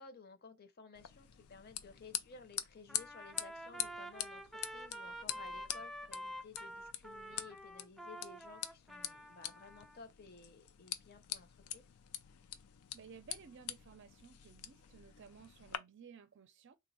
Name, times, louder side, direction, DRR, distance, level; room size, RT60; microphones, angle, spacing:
voice 1, 0.0-11.8, left 4 dB, 45° left, 0.7 m, -56 dB
sound 1, 0.9-15.8, left 11 dB, 85° left, 0.4 m, -45 dB
Trumpet, 2.9-10.0, equal, ahead, 0.4 m, -48 dB
voice 2, 12.9-16.8, right 6 dB, 55° right, 0.5 m, -56 dB
3.4 x 2.1 x 4.0 m
head